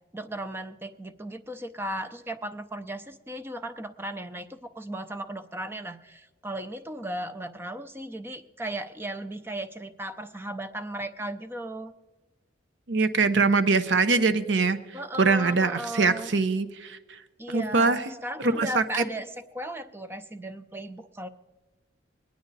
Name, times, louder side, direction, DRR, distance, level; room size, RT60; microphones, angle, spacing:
voice 1, 0.1-11.9 14.9-16.3 17.4-21.3, right 1 dB, 15° right, 10 dB, 0.5 m, -36 dB
voice 2, 12.9-14.8 15.2-17.0 17.5-18.0 18.4-18.8, right 4 dB, 80° right, 13 dB, 0.6 m, -23 dB
21.5 x 9.4 x 4.0 m, 1.2 s
head